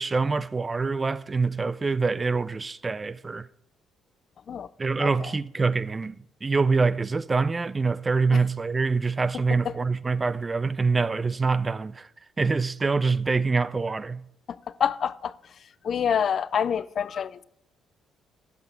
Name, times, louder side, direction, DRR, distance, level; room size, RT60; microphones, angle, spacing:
voice 1, 0.0-3.5 4.8-12.1 12.4-14.2, right 4 dB, 30° right, 0.4 m, -25 dB
voice 2, 5.0-5.3 14.8-15.3 15.8-17.4, left 8 dB, 55° left, 0.4 m, -26 dB
11.0 x 7.9 x 5.1 m
hypercardioid pair, 50°, 0 cm